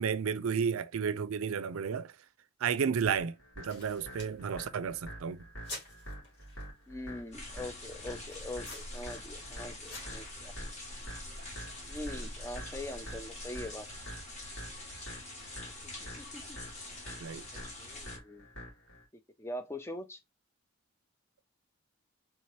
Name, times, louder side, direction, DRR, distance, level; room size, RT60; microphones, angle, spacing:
voice 1, 0.0-2.1 2.6-5.4 17.2-17.5, right 6 dB, 80° right, 0.4 m, -32 dB
sound 1, 3.1-19.0, equal, 75° left, 2.3 m, -48 dB
sound 2, 3.7-10.3, left 2 dB, 55° left, 1.8 m, -51 dB
voice 2, 6.9-10.5 11.9-13.9 16.0-16.6 17.5-18.5 19.4-20.2, left 1 dB, 10° left, 0.5 m, -43 dB
sound 3, 7.3-18.2, left 1 dB, 35° left, 1.1 m, -45 dB
3.6 x 2.8 x 3.1 m
head